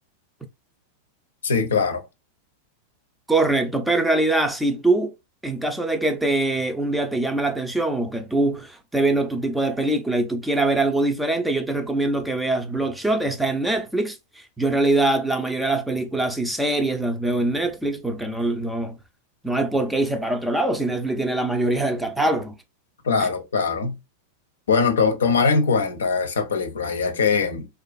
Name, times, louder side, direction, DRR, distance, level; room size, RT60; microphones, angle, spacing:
voice 1, 1.4-2.0 23.0-24.0 24.7-27.7, left 5 dB, 80° left, 0.5 m, -21 dB
voice 2, 3.3-5.1 5.4-19.0 19.4-22.5 23.2-23.3, right 2 dB, 5° right, 0.5 m, -23 dB
2.5 x 2.3 x 2.3 m
hypercardioid pair, 100°, 0 cm